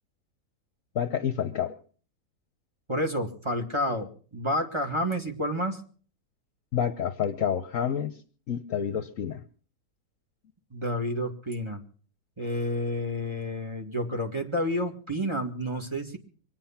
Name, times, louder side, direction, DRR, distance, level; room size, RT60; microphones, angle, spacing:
voice 1, 0.9-1.8 6.7-8.2 8.5-9.4, left 8 dB, 60° left, 11 dB, 1.2 m, -28 dB
voice 2, 2.9-5.8 10.7-11.8 12.4-16.2, equal, 15° right, 3 dB, 1.9 m, -30 dB
24.5 x 9.3 x 5.8 m, 0.43 s
omnidirectional pair, 1.7 m